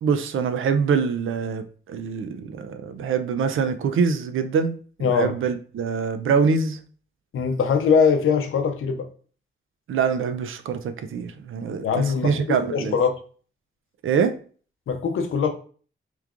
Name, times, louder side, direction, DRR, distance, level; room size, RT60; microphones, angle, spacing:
voice 1, 0.0-6.8 9.9-13.0 14.0-14.4, right 6 dB, 80° right, 0.4 m, -24 dB
voice 2, 5.0-5.3 7.3-9.1 11.8-13.2 14.9-15.5, left 6 dB, 90° left, 0.6 m, -22 dB
3.1 x 2.4 x 3.5 m
wide cardioid pair, 100°, 20 cm